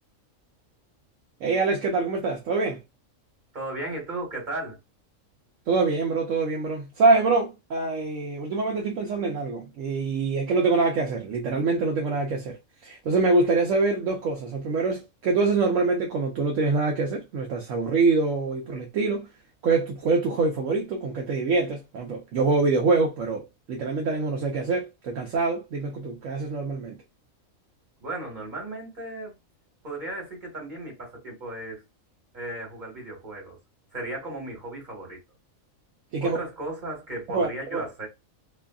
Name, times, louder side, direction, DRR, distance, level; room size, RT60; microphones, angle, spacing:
voice 1, 1.4-2.8 5.7-12.6 12.8-19.3 19.6-27.0 36.1-36.4 37.3-37.9, right 3 dB, 70° right, 0.9 m, -25 dB
voice 2, 3.5-4.8 28.0-29.4 29.8-31.8 32.3-33.6 33.9-35.2 36.2-38.1, right 2 dB, 35° right, 1.5 m, -35 dB
2.7 x 2.4 x 2.2 m
omnidirectional pair, 1.4 m